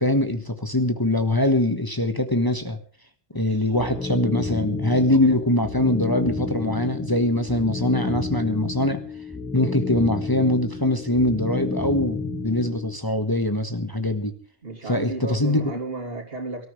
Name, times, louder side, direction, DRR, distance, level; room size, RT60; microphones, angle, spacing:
voice 1, 0.0-2.8 3.3-9.0 9.5-14.3 14.9-15.6, left 1 dB, 20° left, 7 dB, 1.4 m, -23 dB
voice 2, 3.3-4.0 14.6-16.7, right 3 dB, 65° right, 2 dB, 3.4 m, -34 dB
sound 1, 3.7-13.0, left 3 dB, 5° left, 3.1 m, -31 dB
24.0 x 14.0 x 3.2 m, 0.41 s
omnidirectional pair, 1.1 m